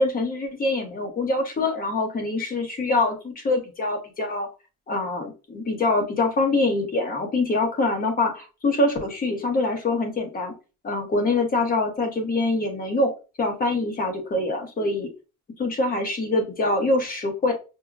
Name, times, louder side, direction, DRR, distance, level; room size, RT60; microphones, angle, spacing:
voice 1, 0.0-4.5 4.9-10.5 10.8-13.1 13.4-15.1 15.6-17.5, left 2 dB, 30° left, 2 dB, 0.9 m, -24 dB
5.4 x 2.1 x 2.3 m, 0.31 s
cardioid pair, 160°, 30 cm